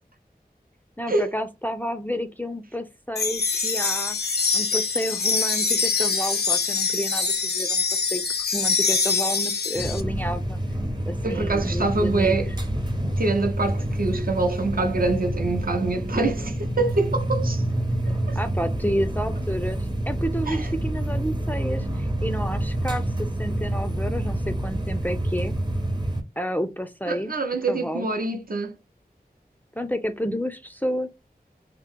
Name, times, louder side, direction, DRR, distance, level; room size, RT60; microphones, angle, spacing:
voice 1, 1.0-7.8 8.1-8.2 8.5-10.6 11.1-12.4 18.4-25.5 26.4-27.3 27.7-28.1 29.8-31.1, equal, 10° left, 0.4 m, -30 dB
sound 1, 3.2-10.0, left 4 dB, 85° left, 0.5 m, -24 dB
sound 2, 9.8-26.2, right 1 dB, 25° right, 0.7 m, -27 dB
voice 2, 11.2-12.5 13.2-17.6 18.3-18.4 20.5-20.7 27.1-28.8, right 3 dB, 65° right, 0.6 m, -25 dB
2.8 x 2.0 x 3.5 m
wide cardioid pair, 50°, 16 cm